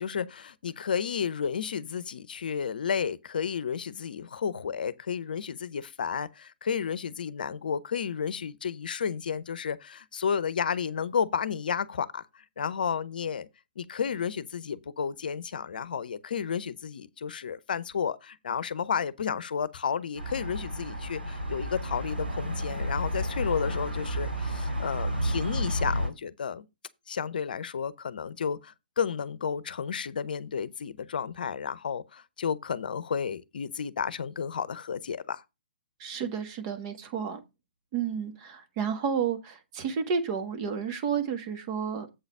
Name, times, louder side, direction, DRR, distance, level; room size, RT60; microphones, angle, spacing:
voice 1, 0.0-13.5 13.8-26.7 27.1-35.4, left 7 dB, 60° left, 0.7 m, -32 dB
sound 1, 20.1-26.1, equal, 85° right, 3.1 m, -31 dB
voice 2, 36.0-37.4 37.9-42.1, right 7 dB, 35° right, 1.6 m, -31 dB
8.0 x 4.0 x 6.6 m
figure-of-eight pair, 130°, 5 cm